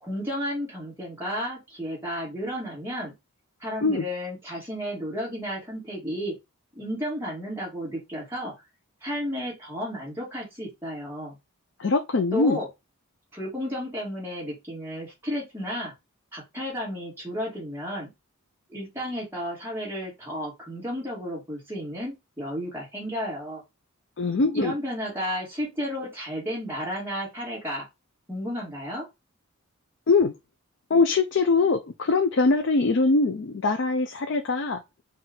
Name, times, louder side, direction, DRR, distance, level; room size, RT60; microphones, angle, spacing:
voice 1, 0.0-3.1 3.6-6.3 6.7-8.5 9.0-11.4 12.3-12.7 13.3-15.9 16.3-18.1 18.7-23.6 24.5-27.9 28.3-29.1, equal, 10° right, 1.9 m, -32 dB
voice 2, 11.8-12.6 24.2-24.7 30.1-30.3 30.9-34.8, left 3 dB, 55° left, 0.4 m, -22 dB
4.2 x 2.5 x 3.8 m
head